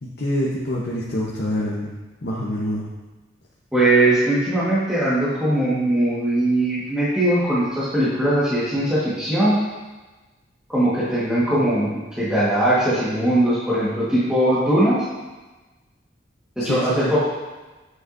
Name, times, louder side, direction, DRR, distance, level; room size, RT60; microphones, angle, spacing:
voice 1, 0.0-1.9 2.2-2.9 16.6-17.1, left 1 dB, 60° left, -5 dB, 0.8 m, -26 dB
voice 2, 3.7-9.6 10.7-15.0 16.6-17.2, right 1 dB, 5° right, -11 dB, 1.4 m, -20 dB
7.6 x 6.2 x 2.6 m, 1.2 s
head